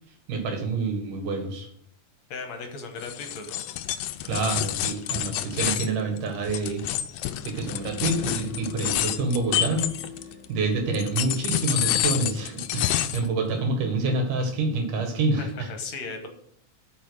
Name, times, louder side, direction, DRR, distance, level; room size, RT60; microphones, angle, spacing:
voice 1, 0.3-1.7 4.2-6.8 7.4-9.9 10.5-15.7, right 3 dB, 80° right, 4 dB, 3.3 m, -27 dB
voice 2, 2.3-3.6 15.5-16.3, left 4 dB, 65° left, 4 dB, 2.3 m, -36 dB
sound 1, 3.0-10.5 10.9-13.3, left 12 dB, 85° left, 2.1 m, -28 dB
sound 2, 7.6-15.0, left 4 dB, 25° left, 2.0 m, -45 dB
8.5 x 6.0 x 6.3 m, 0.65 s
omnidirectional pair, 3.6 m